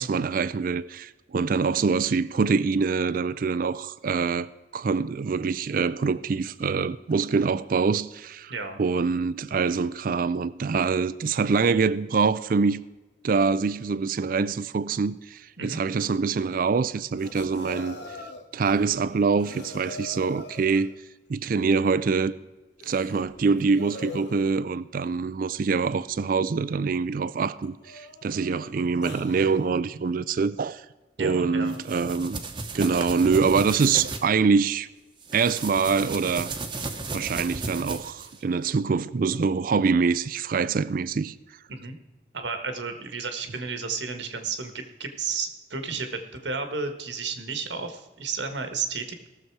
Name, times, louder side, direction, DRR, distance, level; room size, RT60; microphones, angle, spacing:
voice 1, 0.0-8.5 8.8-12.8 13.2-18.0 18.5-20.9 21.3-22.3 22.9-30.8 31.2-32.4 32.7-34.9 35.3-36.5 37.1-41.3, right 5 dB, 50° right, 0.4 m, -25 dB
voice 2, 8.5-8.8 15.6-15.8 31.2-31.8 41.7-42.0 42.3-49.3, right 4 dB, 75° right, 1.5 m, -32 dB
sound 1, 17.2-21.0 21.6-21.7 22.3-22.4 22.8-24.5 26.4-26.5 27.2-27.3 27.6-29.8 32.8-32.9 33.3-33.7 34.7-34.8, left 3 dB, 70° left, 1.3 m, -42 dB
sound 2, 31.7-34.2 35.2-38.4, right 3 dB, 25° right, 1.0 m, -34 dB
18.0 x 6.9 x 4.6 m
head